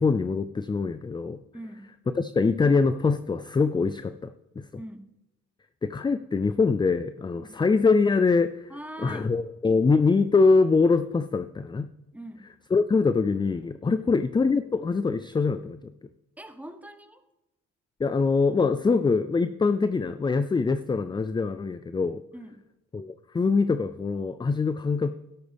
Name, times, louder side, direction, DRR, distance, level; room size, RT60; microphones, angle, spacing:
voice 1, 0.0-1.4 2.2-4.3 4.6-4.7 5.8-8.7 9.0-11.9 12.7-15.8 18.0-22.2 22.9-25.1, left 4 dB, 15° left, 12 dB, 0.4 m, -23 dB
voice 2, 1.5-1.9 4.8-5.1 7.4-7.6 8.7-9.4 12.1-12.5 13.8-14.1 16.4-17.2 22.3-22.6, right 1 dB, 5° right, 8 dB, 1.1 m, -42 dB
12.5 x 12.0 x 3.5 m, 0.98 s
cardioid pair, 90°, 30 cm